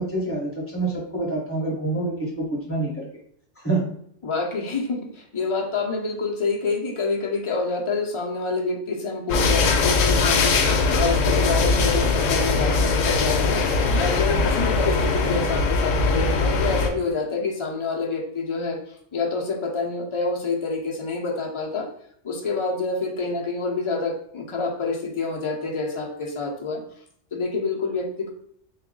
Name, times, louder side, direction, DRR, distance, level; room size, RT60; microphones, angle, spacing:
voice 1, 0.0-3.1 3.6-3.9, right 2 dB, 10° left, -4 dB, 0.9 m, -26 dB
voice 2, 4.2-10.6 10.9-13.6 14.0-18.8 19.1-21.9 22.2-26.8 27.3-28.3, left 3 dB, 40° left, 0 dB, 0.4 m, -27 dB
sound 1, 9.3-16.9, left 4 dB, 85° left, 1.0 m, -21 dB
3.5 x 2.3 x 3.7 m, 0.65 s
omnidirectional pair, 1.3 m